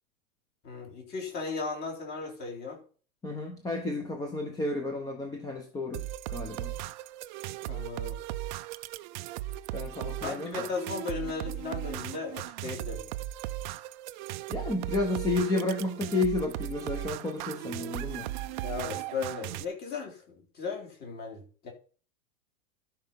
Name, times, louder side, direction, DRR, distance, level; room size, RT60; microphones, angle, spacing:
voice 1, 0.6-2.8 7.6-8.2 10.2-13.1 18.6-21.7, left 4 dB, 25° left, 3.6 m, -36 dB
voice 2, 3.2-6.7 9.7-10.7 14.5-18.3, left 2 dB, 10° left, 1.0 m, -31 dB
sound 1, 5.9-19.6, right 14 dB, 40° right, 0.6 m, -37 dB
12.5 x 5.5 x 5.5 m
supercardioid pair, 155°, 38 cm